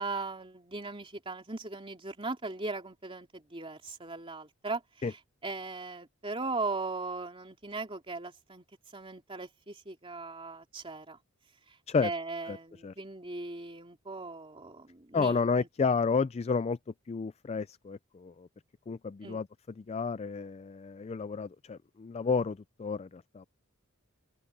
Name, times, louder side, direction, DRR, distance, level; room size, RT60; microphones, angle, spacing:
voice 1, 0.0-4.8 5.4-8.6 8.9-11.2 12.0-15.7 19.2-19.4, right 3 dB, 25° right, 3.2 m, -38 dB
voice 2, 15.1-16.8 17.1-18.5 18.9-19.5 19.8-23.5, left 5 dB, 30° left, 0.3 m, -31 dB
open air
head